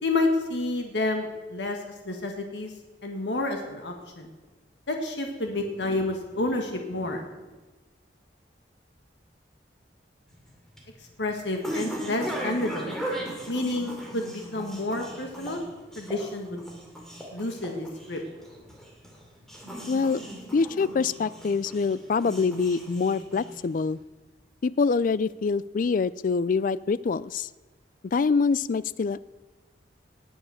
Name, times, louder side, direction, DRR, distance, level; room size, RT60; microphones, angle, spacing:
voice 1, 0.0-2.7 3.0-4.3 4.9-7.3 11.2-13.0 13.5-15.6 15.9-16.6 17.3-18.2, left 2 dB, 85° left, 3 dB, 1.7 m, -29 dB
sound 1, 10.3-23.9, right 1 dB, 5° left, 2.8 m, -38 dB
voice 2, 19.9-20.2 20.5-24.0 24.6-27.5 28.1-29.2, left 4 dB, 50° left, 19 dB, 0.4 m, -25 dB
18.5 x 7.3 x 7.1 m, 1.2 s
head